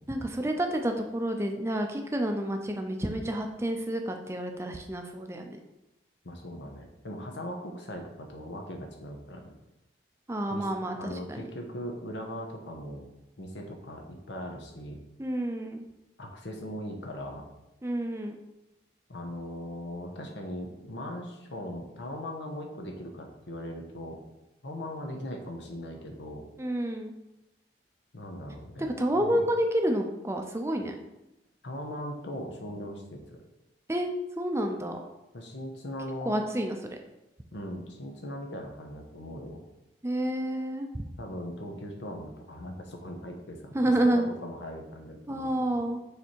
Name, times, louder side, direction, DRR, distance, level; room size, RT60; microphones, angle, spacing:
voice 1, 0.1-5.6 10.3-11.4 15.2-15.8 17.8-18.4 26.6-27.1 29.0-30.9 33.9-34.1 34.4-35.0 36.3-37.0 40.0-41.1 43.7-44.3 45.3-46.0, right 1 dB, 15° right, 4 dB, 0.5 m, -29 dB
voice 2, 6.2-9.5 10.5-13.1 13.4-15.0 16.2-17.4 19.1-24.2 24.6-26.4 28.1-28.9 29.2-29.4 31.6-33.4 35.3-36.3 37.5-39.6 41.2-45.8, equal, 85° left, 2 dB, 1.1 m, -39 dB
6.9 x 3.4 x 4.5 m, 0.94 s
head